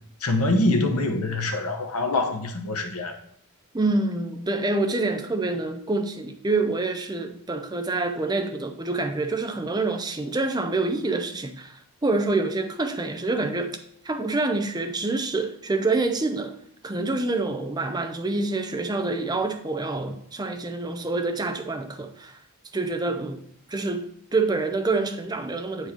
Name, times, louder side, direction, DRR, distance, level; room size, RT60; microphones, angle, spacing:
voice 1, 0.2-3.2, left 2 dB, 80° left, 1.1 m, -24 dB
voice 2, 3.7-13.8 14.0-16.5 16.8-22.4 22.7-24.1 24.3-25.9, right 3 dB, 20° right, 0.5 m, -27 dB
8.0 x 4.7 x 4.3 m
head